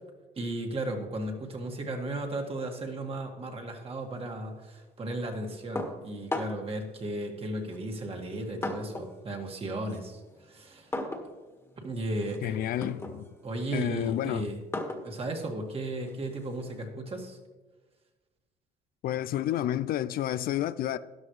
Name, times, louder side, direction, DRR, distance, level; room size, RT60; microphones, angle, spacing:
voice 1, 0.4-10.9 11.8-12.6 13.4-14.6 15.0-17.4, right 1 dB, 35° right, 2.0 m, -35 dB
sound 1, 5.8-6.8 7.7-9.2 9.5-16.8, left 2 dB, 15° left, 1.6 m, -39 dB
voice 2, 12.4-13.3 13.7-14.5 19.0-21.0, left 12 dB, 60° left, 0.4 m, -30 dB
13.5 x 10.5 x 3.2 m
cardioid pair, 110°, 17 cm